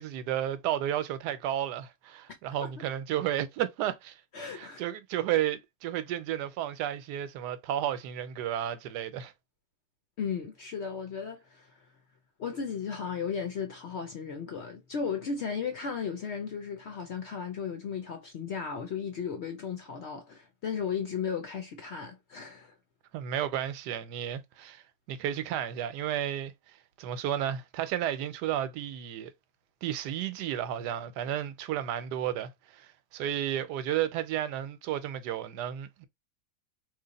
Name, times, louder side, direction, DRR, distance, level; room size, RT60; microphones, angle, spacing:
voice 1, 0.0-4.2 4.5-9.3 23.1-24.8 25.1-26.5 27.0-29.3 29.8-36.0, right 11 dB, 90° right, 1.2 m, -32 dB
voice 2, 2.3-2.9 4.3-4.8 10.2-11.8 12.4-22.7, left 6 dB, 65° left, 0.6 m, -35 dB
3.1 x 2.5 x 3.9 m
omnidirectional pair, 1.7 m